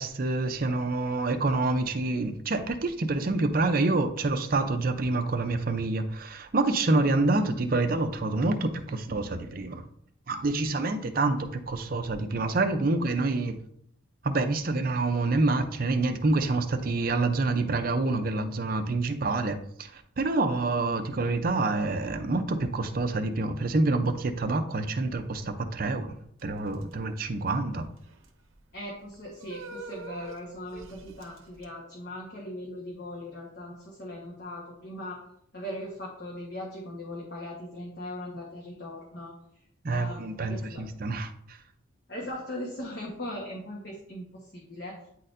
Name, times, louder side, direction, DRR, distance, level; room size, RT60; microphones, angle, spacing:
voice 1, 0.0-9.8 10.3-13.6 14.2-26.2 26.4-27.9 39.8-41.6, right 2 dB, 45° right, 8 dB, 0.5 m, -27 dB
sound 1, 26.4-31.6, right 4 dB, 75° right, 0.8 m, -46 dB
voice 2, 28.7-35.3 35.5-39.3 39.9-40.8 42.1-45.0, left 1 dB, 50° left, -3 dB, 1.1 m, -39 dB
9.1 x 4.1 x 2.6 m, 0.68 s
head